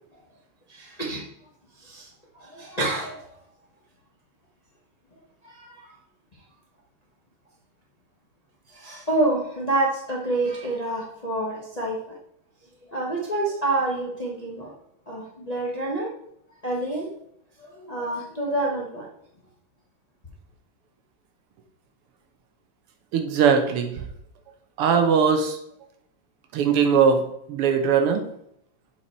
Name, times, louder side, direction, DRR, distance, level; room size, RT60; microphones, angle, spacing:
voice 1, 0.7-1.2 1.8-2.1 2.3-3.3 5.4-5.9 8.7-12.2 12.8-14.7 15.1-16.1 16.6-17.1 17.6-19.1, right 2 dB, 35° left, -2 dB, 0.6 m, -28 dB
voice 2, 23.1-24.0 24.8-25.6 26.5-27.2 27.5-28.2, right 6 dB, 85° right, 6 dB, 1.9 m, -20 dB
6.9 x 4.7 x 4.4 m, 0.73 s
omnidirectional pair, 2.4 m